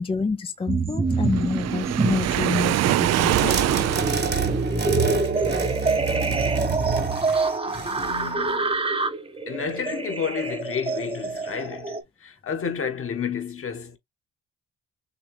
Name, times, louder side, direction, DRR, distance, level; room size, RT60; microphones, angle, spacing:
voice 1, 0.0-3.6 5.0-5.2, left 4 dB, 20° left, 0.4 m, -28 dB
sound 1, 0.7-2.6 3.0-12.0, right 3 dB, 20° right, 0.9 m, -27 dB
Waves surf, 1.3-4.8, right 13 dB, 60° right, 0.4 m, -24 dB
sound 2, 3.2-8.3, right 5 dB, 35° right, 1.2 m, -27 dB
voice 2, 7.6-8.8 9.5-14.0, left 6 dB, 45° left, 1.4 m, -31 dB
6.5 x 2.3 x 3.2 m
cardioid pair, 90°, 30 cm